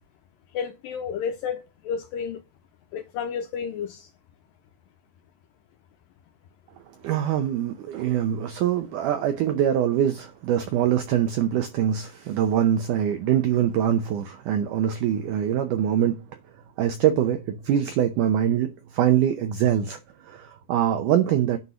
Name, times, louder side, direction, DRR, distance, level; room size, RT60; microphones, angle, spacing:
voice 1, 0.5-2.4 2.9-4.1, left 7 dB, 85° left, 2.0 m, -31 dB
voice 2, 7.0-16.2 16.8-21.6, right 10 dB, 85° right, 1.8 m, -23 dB
9.6 x 4.2 x 6.0 m
omnidirectional pair, 4.6 m